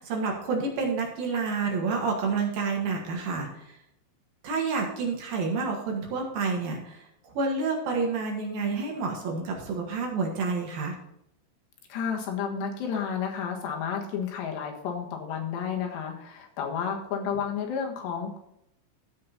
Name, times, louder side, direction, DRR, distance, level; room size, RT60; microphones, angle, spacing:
voice 1, 0.0-3.8 4.4-11.0, right 4 dB, 60° right, 0 dB, 3.4 m, -29 dB
voice 2, 11.9-18.4, left 7 dB, 70° left, 2 dB, 3.6 m, -31 dB
15.0 x 5.3 x 4.2 m, 0.80 s
omnidirectional pair, 5.2 m